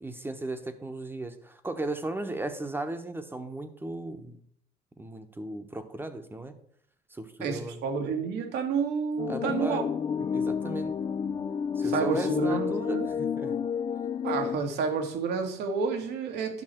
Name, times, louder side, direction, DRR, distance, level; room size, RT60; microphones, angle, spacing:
voice 1, 0.0-4.4 5.0-6.5 7.1-7.8 9.3-9.9 10.3-10.9 11.8-13.5, right 2 dB, 15° right, 1.0 m, -36 dB
voice 2, 7.4-9.8 10.2-10.3 11.8-13.1 14.2-16.6, right 5 dB, 80° right, 1.7 m, -30 dB
sound 1, 9.2-14.6, left 7 dB, 30° left, 0.4 m, -30 dB
11.0 x 5.8 x 4.4 m
cardioid pair, 110°, 17 cm